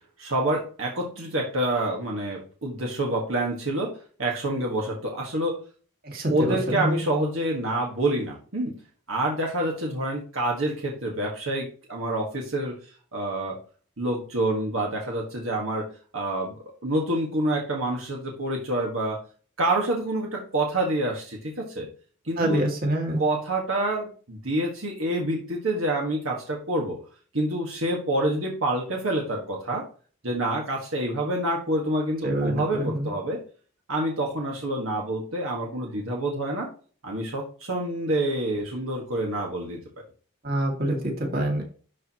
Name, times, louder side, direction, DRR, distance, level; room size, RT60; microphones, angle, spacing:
voice 1, 0.2-5.6 6.3-8.8 9.1-12.7 13.1-13.6 14.0-19.2 19.6-21.9 22.2-22.7 23.2-27.0 27.3-29.8 30.2-33.4 33.9-36.7 37.0-39.8, right 1 dB, 70° right, -1 dB, 1.6 m, -27 dB
voice 2, 6.0-7.0 22.4-23.2 32.2-33.1 40.4-41.6, right 1 dB, 45° right, 0 dB, 2.2 m, -26 dB
11.5 x 4.5 x 3.0 m, 0.40 s
head